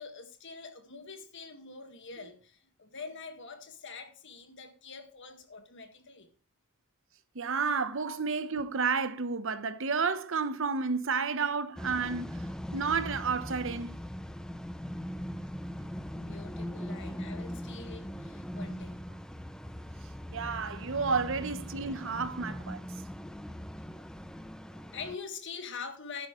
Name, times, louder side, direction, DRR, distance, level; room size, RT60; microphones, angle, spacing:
voice 1, 0.0-6.3 16.1-19.0 23.8-24.1 24.7-26.3, left 5 dB, 55° left, 1.7 m, -45 dB
voice 2, 7.3-13.9 20.3-22.8, right 5 dB, 60° right, 0.9 m, -31 dB
sound 1, 11.8-25.2, equal, 5° left, 0.5 m, -40 dB
11.5 x 10.5 x 3.1 m
head